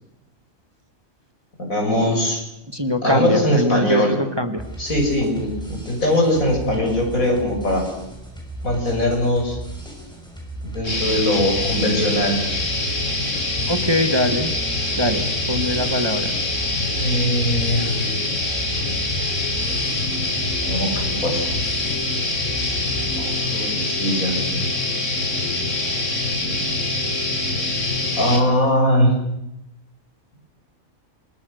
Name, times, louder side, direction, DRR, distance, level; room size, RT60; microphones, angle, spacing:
voice 1, 1.6-2.4 3.0-4.2 4.8-7.8 8.6-9.6 10.7-12.4 17.0-18.2 20.6-21.5 23.2-24.3 28.2-29.1, left 1 dB, 90° left, 1 dB, 7.1 m, -21 dB
voice 2, 2.7-4.6 13.7-14.5 15.0-16.3, left 1 dB, 20° right, 7 dB, 1.8 m, -22 dB
sound 1, 4.6-23.3, right 2 dB, 5° left, 6.5 m, -36 dB
sound 2, 10.8-28.4, left 2 dB, 65° left, 4.0 m, -24 dB
28.0 x 23.0 x 6.6 m, 0.86 s
omnidirectional pair, 1.4 m